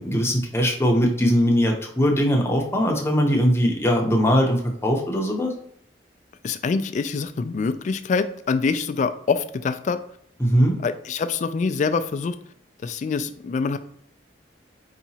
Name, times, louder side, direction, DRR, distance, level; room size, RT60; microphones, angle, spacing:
voice 1, 0.0-5.5 10.4-10.7, equal, 15° left, 0 dB, 0.7 m, -20 dB
voice 2, 6.4-10.0 10.8-12.4 12.8-13.8, left 5 dB, 45° left, 11 dB, 0.3 m, -25 dB
4.7 x 2.9 x 2.8 m, 0.68 s
head